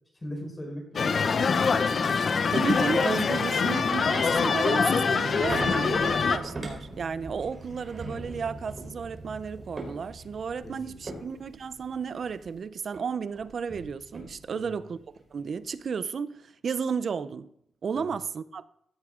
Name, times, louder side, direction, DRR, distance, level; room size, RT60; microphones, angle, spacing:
voice 1, 0.2-1.9 10.6-10.7 11.1-11.2 14.5-14.6 17.9-18.1, equal, 20° left, 4.4 m, -39 dB
sound 1, 1.0-6.4, left 5 dB, 50° left, 0.7 m, -24 dB
voice 2, 2.5-15.0 15.3-17.5 17.8-18.6, right 6 dB, 55° right, 0.5 m, -33 dB
sound 2, 4.2-12.6 12.9-13.0 13.3-14.7 15.2-15.3, right 2 dB, 40° right, 3.9 m, -40 dB
15.5 x 8.3 x 3.7 m
wide cardioid pair, 115°, 0 cm